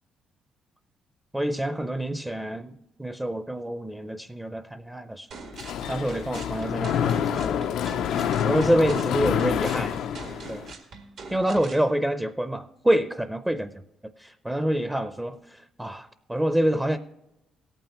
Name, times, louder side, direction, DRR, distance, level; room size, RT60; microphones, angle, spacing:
voice 1, 1.3-5.3 5.9-7.8 8.4-10.0 10.5-10.6 11.3-13.7 14.2-17.0, right 1 dB, 10° right, 0.5 m, -27 dB
sound 1, 5.3-11.9, right 3 dB, 75° right, 1.8 m, -42 dB
Mechanisms, 5.5-10.7, left 9 dB, 80° left, 0.4 m, -27 dB
17.0 x 9.0 x 2.9 m
cardioid pair, 90°, 0 cm